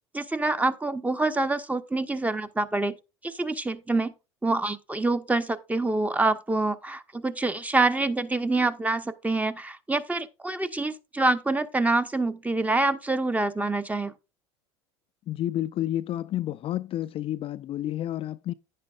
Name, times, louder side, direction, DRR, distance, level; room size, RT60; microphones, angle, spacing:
voice 1, 0.1-3.0 3.2-4.1 4.4-14.1, right 2 dB, 10° right, 0.9 m, -26 dB
voice 2, 15.3-18.5, left 13 dB, 40° left, 0.4 m, -30 dB
11.0 x 9.6 x 2.4 m
hypercardioid pair, 75°, 15 cm